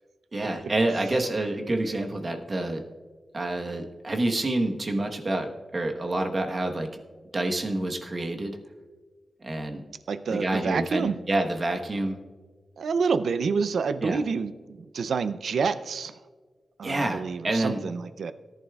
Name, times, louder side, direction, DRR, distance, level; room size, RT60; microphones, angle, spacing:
voice 1, 0.3-2.8 3.3-6.9 7.3-8.6 9.4-9.8 10.3-12.2 14.0-14.2 16.8-17.8, right 2 dB, 35° right, 3 dB, 1.1 m, -28 dB
voice 2, 10.1-11.1 12.8-16.1 16.8-18.3, right 5 dB, 85° right, 13 dB, 0.4 m, -28 dB
18.0 x 11.0 x 2.4 m, 1.4 s
wide cardioid pair, 110°, 0 cm